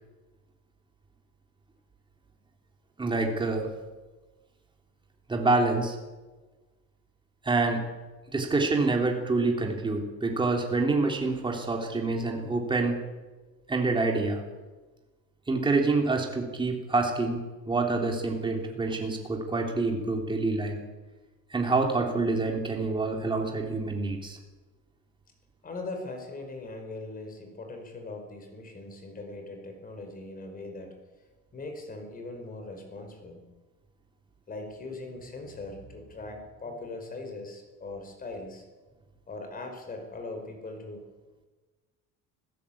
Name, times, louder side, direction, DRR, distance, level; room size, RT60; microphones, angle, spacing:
voice 1, 3.0-3.7 5.3-6.0 7.4-7.8 8.3-13.0 13.7-14.4 15.5-17.4 17.7-20.8 21.5-24.4, right 3 dB, 15° right, 2 dB, 3.3 m, -27 dB
voice 2, 25.6-31.0 31.5-33.4 34.5-38.6 39.3-41.1, left 2 dB, 25° left, 5 dB, 4.9 m, -40 dB
26.5 x 15.5 x 8.7 m, 1.3 s
cardioid pair, 175°, 34 cm